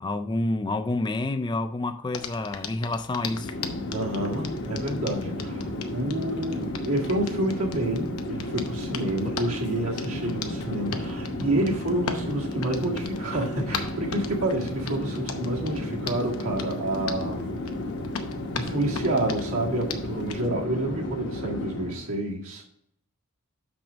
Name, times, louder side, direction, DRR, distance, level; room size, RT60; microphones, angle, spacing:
voice 1, 0.0-3.5, left 2 dB, 20° left, 0.4 m, -28 dB
Hands, 2.1-20.4, left 6 dB, 85° left, 0.8 m, -39 dB
Chatter / Fixed-wing aircraft airplane, 3.2-22.1, left 1 dB, 55° left, 1.1 m, -33 dB
voice 2, 3.9-17.5 18.6-22.7, right 1 dB, 75° right, 1.8 m, -29 dB
6.1 x 6.0 x 5.1 m
head